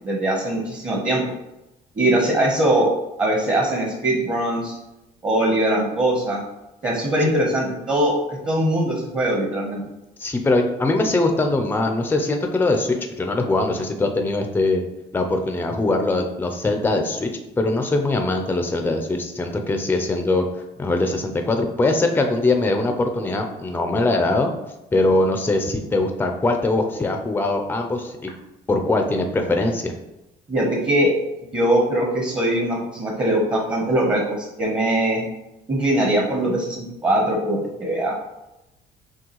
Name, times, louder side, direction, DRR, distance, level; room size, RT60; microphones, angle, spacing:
voice 1, 0.0-1.2 1.9-2.9 3.2-4.7 5.2-6.4 6.8-9.8 30.5-31.1 31.5-35.2 35.7-38.1, right 1 dB, 25° right, -2 dB, 1.0 m, -21 dB
voice 2, 10.2-14.8 15.1-17.3 17.6-20.4 20.8-24.5 24.9-28.3 28.7-29.9, left 2 dB, 10° left, 4 dB, 0.5 m, -22 dB
6.0 x 2.3 x 3.0 m, 0.94 s
cardioid pair, 110°, 17 cm